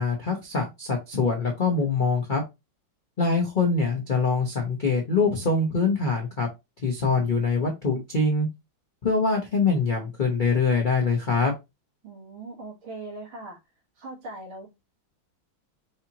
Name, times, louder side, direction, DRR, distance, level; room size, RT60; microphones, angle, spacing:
voice 1, 0.0-2.4 3.2-6.5 6.8-8.5 9.0-11.5, left 4 dB, 70° left, 0.4 m, -24 dB
voice 2, 12.0-13.6 14.0-14.7, right 2 dB, 75° right, 2.3 m, -40 dB
4.8 x 2.9 x 2.8 m
omnidirectional pair, 2.2 m